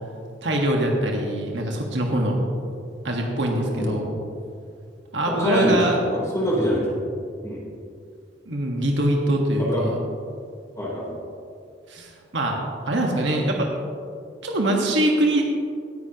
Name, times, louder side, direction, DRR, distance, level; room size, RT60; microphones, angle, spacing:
voice 1, 0.4-2.5 3.0-4.1 5.1-6.0 8.5-9.9 11.9-12.6 12.8-13.7 14.4-15.4, right 1 dB, 70° right, 0 dB, 1.5 m, -23 dB
voice 2, 3.7-4.1 5.3-5.8 6.1-6.9 7.4-7.6 9.6-9.9 10.8-11.1, equal, 15° left, -6 dB, 3.3 m, -24 dB
18.0 x 10.0 x 2.9 m, 2.4 s
head